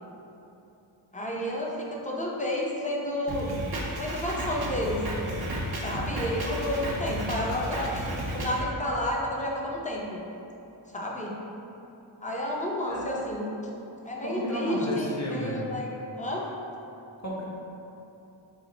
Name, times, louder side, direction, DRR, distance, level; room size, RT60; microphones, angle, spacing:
voice 1, 1.1-3.5 4.0-5.0 5.8-8.1 8.3-10.2 10.9-11.3 12.2-13.5 14.0-15.9 16.2-16.4, left 1 dB, 15° left, -3 dB, 0.7 m, -31 dB
Drum kit, 3.3-8.6, right 1 dB, 50° right, 0.7 m, -33 dB
voice 2, 14.2-15.6 17.2-17.4, equal, 35° left, -6 dB, 1.1 m, -32 dB
6.1 x 2.1 x 4.0 m, 2.9 s
wide cardioid pair, 40°, 48 cm